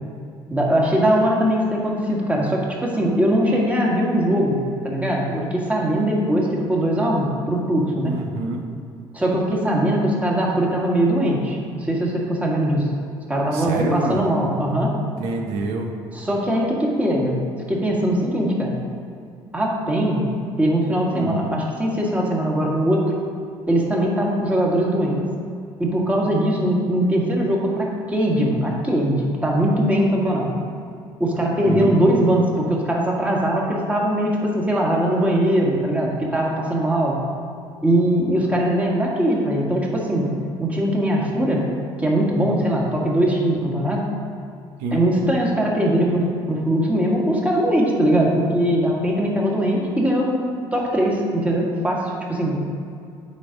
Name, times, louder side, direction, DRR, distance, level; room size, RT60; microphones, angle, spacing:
voice 1, 0.5-4.6 4.8-8.1 9.1-12.9 13.3-15.0 16.1-17.4 17.7-18.7 19.5-20.3 20.6-23.1 23.7-25.2 25.8-30.5 31.2-37.2 37.8-40.3 40.6-41.6 42.0-44.0 44.9-50.4 50.7-52.6, right 1 dB, 15° right, -2 dB, 1.7 m, -21 dB
voice 2, 8.0-8.6 13.5-14.3 15.2-15.9 21.1-21.4 31.6-32.0 44.8-45.0, right 3 dB, 85° right, 2 dB, 0.9 m, -27 dB
8.2 x 4.2 x 5.2 m, 2.4 s
supercardioid pair, 90°, 10 cm